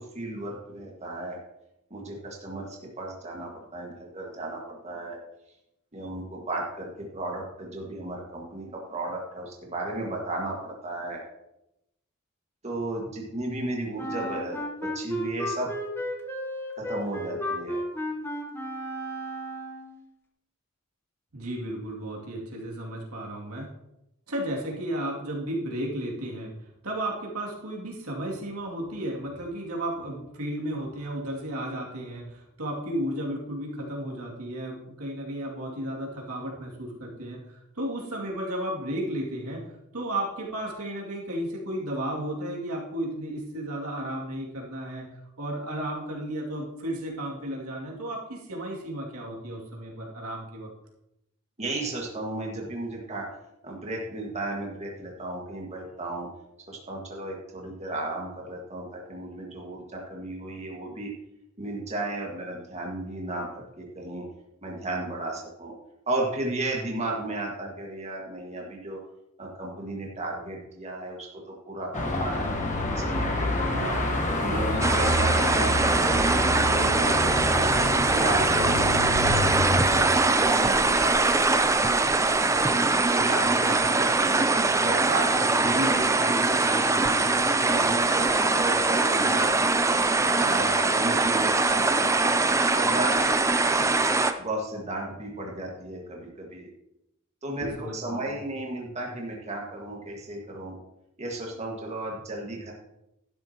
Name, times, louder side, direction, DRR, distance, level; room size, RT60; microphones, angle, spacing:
voice 1, 0.0-1.4 1.9-5.2 5.9-11.2 12.6-15.7 16.8-17.8 51.6-53.3 53.6-56.3 56.7-61.1 61.6-64.3 64.6-65.7 66.1-69.0 69.4-72.6 72.9-74.1 74.4-77.7 78.1-81.7 83.1-84.4 84.7-85.8 86.4-86.6 87.2-89.5 90.2-92.3 92.7-93.2 94.4-96.7 97.4-100.8 101.2-102.7, right 2 dB, 30° right, -2 dB, 1.7 m, -34 dB
Wind instrument woodwind instrument, 14.0-20.0, equal, 10° left, 1.2 m, -33 dB
voice 2, 21.3-23.7 24.3-26.5 26.8-37.4 37.8-39.6 39.9-45.1 45.4-50.7 85.7-87.3 97.6-98.4, right 1 dB, 80° right, -2 dB, 2.5 m, -33 dB
Car passing by / Traffic noise roadway noise / Engine, 71.9-80.1, left 1 dB, 35° left, 1.2 m, -27 dB
sound 1, 74.8-94.3, right 3 dB, 15° right, 0.5 m, -22 dB
12.0 x 10.0 x 2.9 m, 0.87 s
head